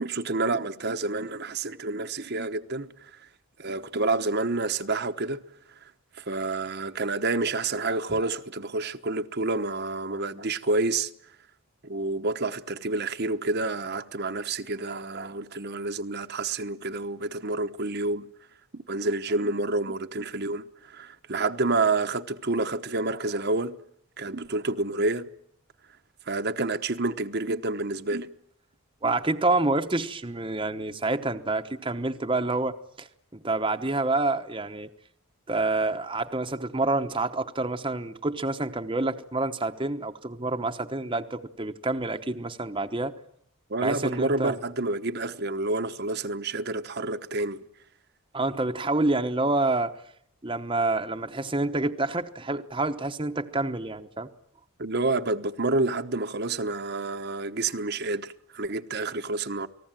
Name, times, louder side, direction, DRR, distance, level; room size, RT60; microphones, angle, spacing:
voice 1, 0.0-3.3 3.6-5.4 6.1-11.1 11.8-18.3 18.7-23.8 24.2-25.3 26.3-28.3 43.7-47.6 54.8-59.7, right 3 dB, 45° right, 1.0 m, -29 dB
voice 2, 29.0-33.1 33.3-34.9 35.5-43.1 43.8-44.6 48.3-49.9 50.4-54.3, right 2 dB, 20° right, 1.0 m, -28 dB
29.5 x 19.5 x 9.1 m
head